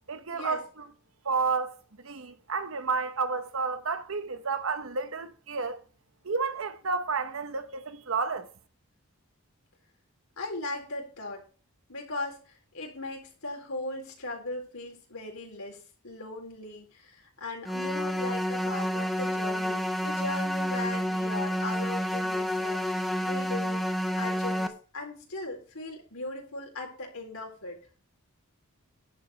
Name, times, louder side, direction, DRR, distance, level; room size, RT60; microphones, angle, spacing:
voice 1, 0.1-0.9 1.2-5.8 6.2-8.5, right 4 dB, 65° right, 1.0 m, -31 dB
voice 2, 10.4-11.4 11.9-15.8 16.0-23.8 24.2-27.8, left 2 dB, 75° left, 4.1 m, -38 dB
sound 1, 17.7-24.7, equal, ahead, 0.7 m, -29 dB
11.0 x 5.1 x 8.1 m
head